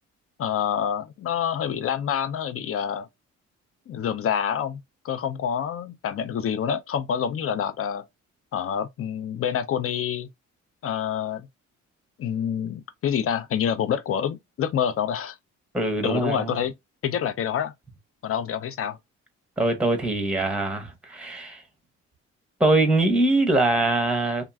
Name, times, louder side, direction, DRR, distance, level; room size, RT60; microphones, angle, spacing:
voice 1, 0.4-3.1 3.9-8.0 8.5-10.3 10.8-11.5 12.2-15.4 16.0-16.7 17.0-17.7 18.2-19.0, left 8 dB, 50° left, 0.5 m, -27 dB
voice 2, 15.7-16.6 19.6-21.6 22.6-24.4, right 2 dB, 5° right, 0.8 m, -23 dB
2.9 x 2.4 x 2.3 m
cardioid pair, 90°, 30 cm